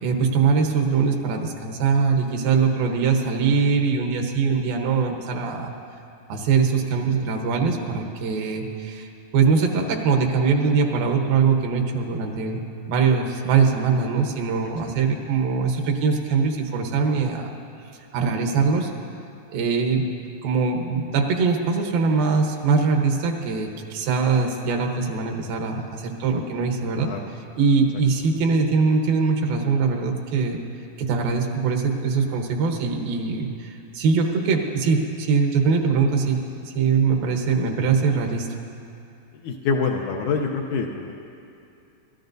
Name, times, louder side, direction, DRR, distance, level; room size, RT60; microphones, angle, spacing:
voice 1, 0.0-5.7 6.3-9.1 9.3-17.5 18.1-18.9 19.5-20.1 20.4-27.1 27.6-30.6 31.0-36.4 36.7-38.5, right 5 dB, 85° right, 2 dB, 2.9 m, -22 dB
voice 2, 26.9-27.3 39.4-41.1, left 5 dB, 75° left, 2 dB, 1.8 m, -25 dB
27.0 x 13.5 x 2.6 m, 2.6 s
omnidirectional pair, 4.0 m